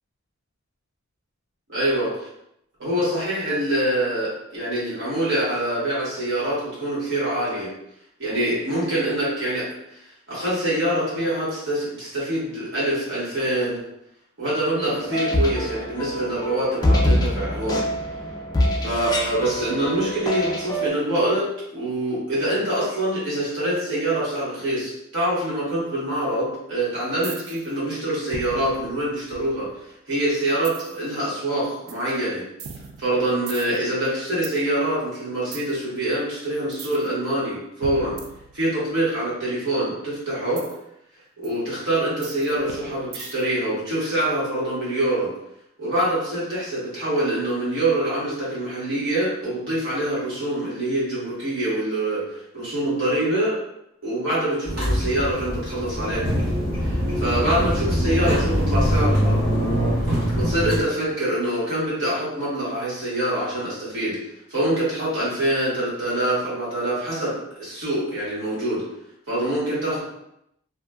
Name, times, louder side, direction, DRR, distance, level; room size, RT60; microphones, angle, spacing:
voice 1, 1.7-2.1 2.8-7.7 8.2-9.7 10.3-13.8 14.4-17.8 18.8-29.7 30.1-32.4 33.0-38.1 38.5-40.6 41.4-45.3 45.8-53.6 54.0-56.3 56.8-59.4 60.3-64.2 64.5-68.8 69.3-70.0, right 1 dB, 65° right, -8 dB, 1.3 m, -25 dB
sound 1, 14.9-20.9, equal, 20° left, 0.3 m, -24 dB
sound 2, 27.2-27.7 28.3-29.9 30.6-31.1 31.9-32.1 32.6-34.6 35.5-35.7 36.7-37.1 37.8-39.0 40.6-40.8 41.4-41.5 42.2-43.6, right 6 dB, 90° right, 0.3 m, -39 dB
sound 3, 54.7-60.8, equal, 45° right, 1.1 m, -23 dB
2.8 x 2.4 x 2.3 m, 0.81 s
head